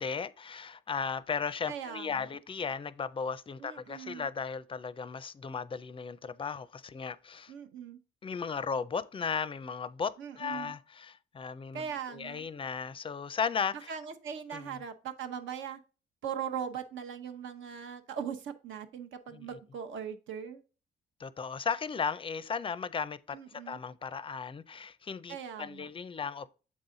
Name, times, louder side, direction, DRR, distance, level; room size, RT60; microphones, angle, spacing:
voice 1, 0.0-7.5 8.2-13.9 14.5-14.7 19.3-19.5 21.2-26.5, left 6 dB, 25° left, 0.4 m, -36 dB
voice 2, 1.7-2.3 3.6-4.3 7.5-8.0 10.2-10.7 11.7-12.5 13.9-15.8 16.2-20.6 23.3-23.8 25.3-25.9, right 8 dB, 75° right, 0.9 m, -40 dB
7.4 x 4.0 x 3.8 m
cardioid pair, 90°, 20 cm